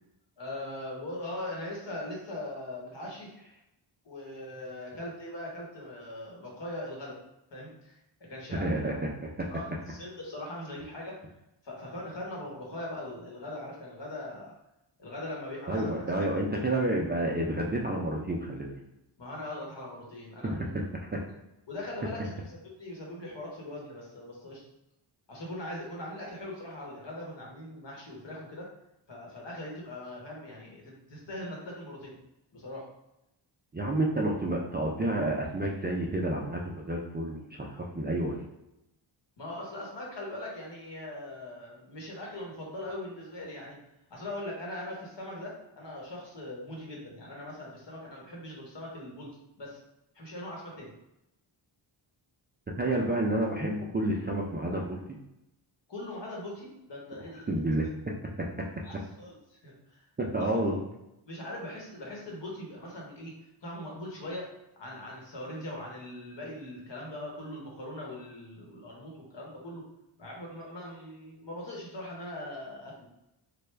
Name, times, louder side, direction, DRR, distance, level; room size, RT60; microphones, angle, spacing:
voice 1, 0.4-3.3 4.0-7.2 7.5-9.0 9.5-11.2 11.6-14.6 15.0-16.4 19.2-20.8 21.7-24.6 25.3-28.7 29.1-32.1 32.5-32.9 39.4-43.8 44.1-49.3 49.6-49.8 50.1-50.9 55.9-57.5 58.8-60.1 60.4-60.6 61.3-69.8 70.2-73.1, left 1 dB, 60° left, -2 dB, 1.2 m, -41 dB
voice 2, 8.6-9.1 9.4-9.5 15.7-18.8 20.4-21.2 33.7-38.4 52.8-55.0 57.5-57.9 58.4-58.7 60.2-60.8, right 1 dB, 25° right, -2 dB, 0.4 m, -30 dB
3.3 x 2.2 x 3.2 m, 0.89 s
wide cardioid pair, 75°, 49 cm